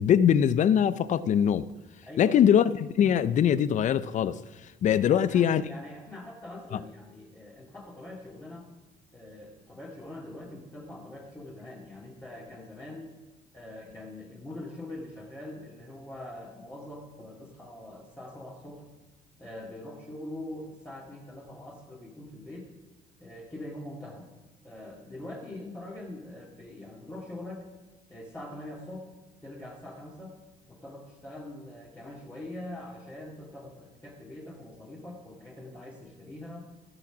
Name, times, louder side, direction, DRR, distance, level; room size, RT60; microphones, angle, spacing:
voice 1, 0.0-1.7 2.2-4.4 4.8-5.6 6.7-6.8, left 9 dB, 45° left, 0.5 m, -22 dB
voice 2, 2.1-2.4 5.1-8.7 9.1-13.1 13.5-18.9 19.4-22.7 23.2-24.3 24.6-27.7 28.1-29.1 29.4-30.3 30.7-36.7, left 1 dB, 15° left, 2.1 m, -43 dB
16.0 x 5.9 x 6.0 m
cardioid pair, 110°, 17 cm